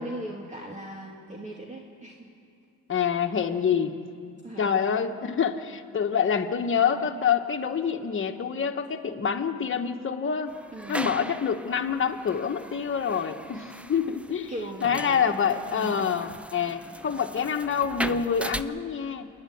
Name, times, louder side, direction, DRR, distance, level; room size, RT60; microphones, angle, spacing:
voice 1, 0.0-2.3 4.4-4.7 10.7-11.0 14.5-15.4 15.7-16.1 16.7-16.8, right 1 dB, 25° right, -1 dB, 2.5 m, -39 dB
voice 2, 2.9-4.0 4.6-10.6 10.9-14.5 14.8-19.3, left 7 dB, 45° left, 5 dB, 1.5 m, -26 dB
sound 1, 10.5-18.6, right 1 dB, 5° right, 0.6 m, -39 dB
28.0 x 11.0 x 9.5 m, 2.4 s
cardioid pair, 90°, 30 cm